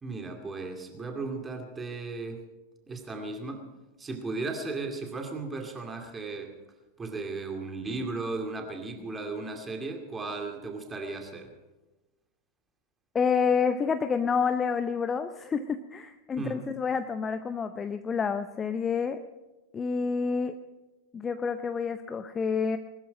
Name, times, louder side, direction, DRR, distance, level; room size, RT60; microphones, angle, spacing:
voice 1, 0.0-2.4 2.9-3.7 4.0-6.5 7.0-11.5 16.4-16.7, right 3 dB, 15° right, 3 dB, 2.4 m, -36 dB
voice 2, 13.1-19.2 19.7-20.5 21.1-22.8, left 6 dB, 20° left, 10 dB, 0.7 m, -28 dB
20.5 x 13.5 x 5.2 m, 1.1 s
figure-of-eight pair, 90°, 0 cm